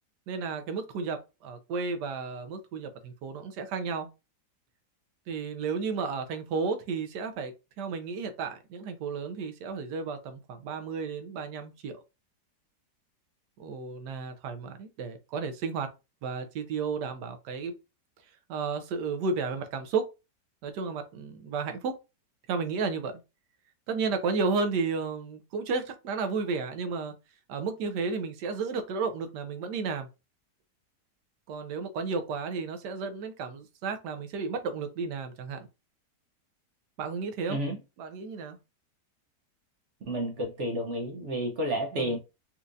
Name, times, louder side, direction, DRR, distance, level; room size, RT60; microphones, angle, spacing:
voice 1, 0.3-4.1 5.3-12.0 13.6-15.9 16.2-17.7 18.5-20.1 20.6-22.0 22.5-23.2 23.9-27.1 27.5-30.1 31.5-35.7 37.0-37.6 38.0-38.6 41.9-42.2, right 4 dB, 80° right, 1.2 m, -33 dB
voice 2, 40.1-42.2, right 1 dB, 55° right, 0.8 m, -30 dB
4.3 x 2.4 x 2.6 m
omnidirectional pair, 1.8 m